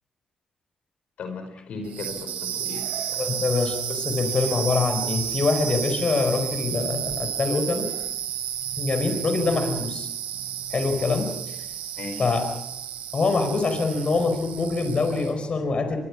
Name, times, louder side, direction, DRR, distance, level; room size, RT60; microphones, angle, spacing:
voice 1, 1.2-3.4 12.0-12.3, left 3 dB, 70° left, 5 dB, 4.9 m, -37 dB
sound 1, 1.8-15.4, right 10 dB, 80° right, 3.1 m, -32 dB
voice 2, 3.2-7.9 8.8-10.1 10.7-11.6 12.2-12.5 13.1-16.0, left 3 dB, 45° left, 7 dB, 4.9 m, -24 dB
24.0 x 22.0 x 6.1 m, 0.89 s
supercardioid pair, 55°, 2 cm